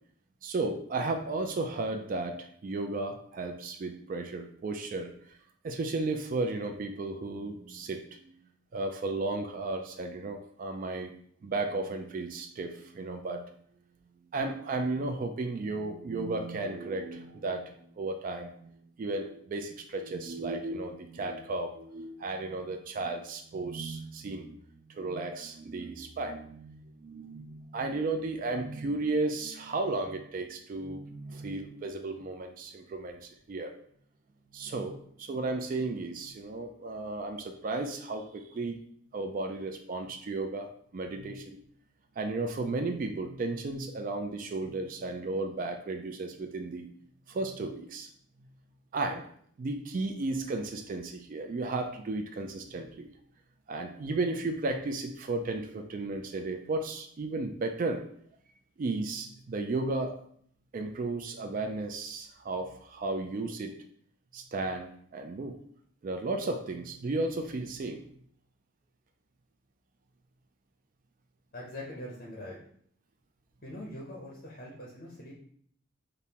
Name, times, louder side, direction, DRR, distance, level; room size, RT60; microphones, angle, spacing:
voice 1, 0.4-5.4 5.6-8.3 8.7-11.1 11.4-13.4 14.3-24.6 24.9-33.7 34.5-38.8 39.1-41.6 42.2-46.9 47.3-48.1 48.9-49.2 49.6-53.1 53.7-58.0 58.8-60.2 60.7-63.7 64.3-65.6 66.0-68.0, right 3 dB, 40° right, 6 dB, 0.3 m, -34 dB
voice 2, 71.5-72.6 73.6-75.3, left 1 dB, 45° left, -2 dB, 0.6 m, -42 dB
5.2 x 2.1 x 2.8 m, 0.63 s
head